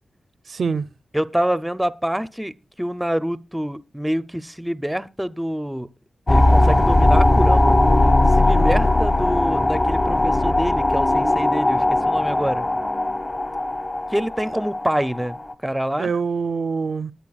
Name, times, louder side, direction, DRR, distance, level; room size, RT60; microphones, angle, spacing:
voice 1, 0.5-0.9 8.5-9.0 16.0-17.1, right 5 dB, 60° right, 0.5 m, -25 dB
voice 2, 1.1-5.9 6.3-12.7 14.1-16.1, equal, 5° right, 0.5 m, -26 dB
sound 1, 6.3-15.5, left 1 dB, 25° left, 0.8 m, -18 dB
20.0 x 10.5 x 2.3 m
wide cardioid pair, 155°, 0 cm